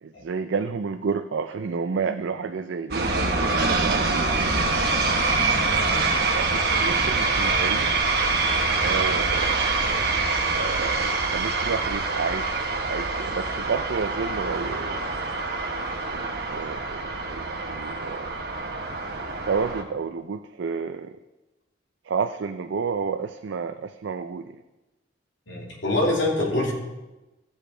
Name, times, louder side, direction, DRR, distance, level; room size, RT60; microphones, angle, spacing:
voice 1, 0.0-4.3 6.0-8.1 8.8-9.6 10.5-15.0 16.1-18.3 19.4-21.2 22.0-24.6, right 5 dB, 75° right, 8 dB, 0.4 m, -31 dB
sound 1, 2.9-19.8, right 3 dB, 55° right, 1.3 m, -25 dB
voice 2, 25.5-26.7, left 2 dB, 75° left, -3 dB, 2.9 m, -25 dB
15.0 x 7.2 x 4.4 m, 1.1 s
head